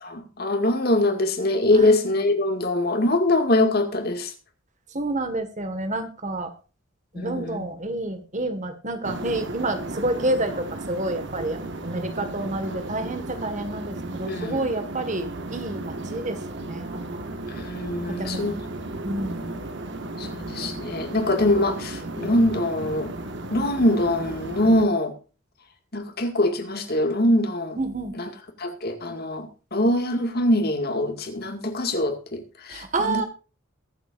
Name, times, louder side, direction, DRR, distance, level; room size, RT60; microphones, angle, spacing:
voice 1, 0.0-4.3 7.2-7.6 14.3-14.7 17.5-18.6 20.2-23.1 23.5-25.1 25.9-27.8 28.2-28.3 28.6-33.2, left 1 dB, 50° left, 6 dB, 2.1 m, -23 dB
voice 2, 4.9-6.5 7.1-17.3 18.1-18.6 19.0-19.5 27.8-28.1 32.7-33.2, right 2 dB, 35° right, 8 dB, 1.7 m, -29 dB
sound 1, 9.0-24.9, right 2 dB, 55° right, 1.6 m, -34 dB
22.5 x 7.8 x 2.6 m, 0.34 s
head